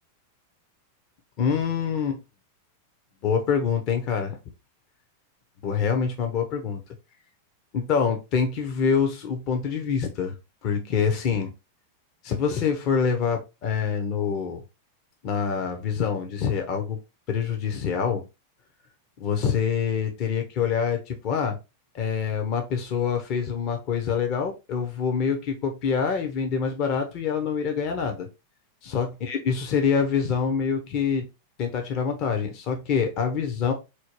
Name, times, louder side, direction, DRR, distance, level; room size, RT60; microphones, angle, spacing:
voice 1, 1.4-2.2 3.2-4.4 5.6-6.8 7.7-10.4 10.6-11.5 12.2-14.6 15.2-17.0 17.3-18.3 19.2-21.6 21.9-28.3 28.8-31.3 31.6-33.7, left 6 dB, 45° left, 0.8 m, -25 dB
4.3 x 2.2 x 3.0 m
hypercardioid pair, 125°, 0 cm